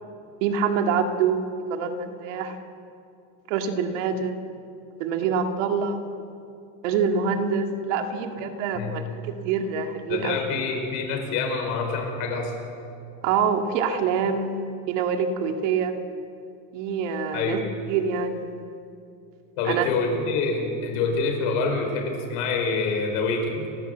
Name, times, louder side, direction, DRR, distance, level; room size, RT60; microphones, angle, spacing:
voice 1, 0.4-1.4 1.7-2.6 3.5-4.3 5.0-6.0 6.8-10.4 13.2-14.6 14.9-16.0 16.7-17.6 17.9-18.5 19.6-19.9, right 6 dB, 70° right, 5 dB, 2.2 m, -25 dB
voice 2, 10.1-12.5 17.3-17.6 19.6-23.7, left 4 dB, 55° left, 3 dB, 5.0 m, -26 dB
30.0 x 12.5 x 8.0 m, 2.5 s
cardioid pair, 175°, 39 cm